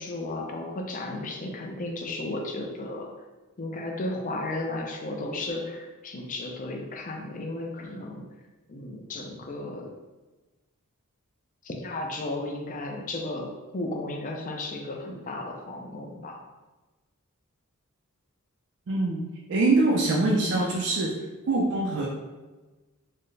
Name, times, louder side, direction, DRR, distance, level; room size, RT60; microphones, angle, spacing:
voice 1, 0.0-3.1 3.6-8.3 8.7-9.9 11.6-16.4, left 2 dB, 35° left, 2 dB, 0.5 m, -34 dB
voice 2, 18.9-19.2 19.5-21.2 21.5-22.1, right 2 dB, 55° right, -2 dB, 0.4 m, -23 dB
4.3 x 2.1 x 3.2 m, 1.2 s
head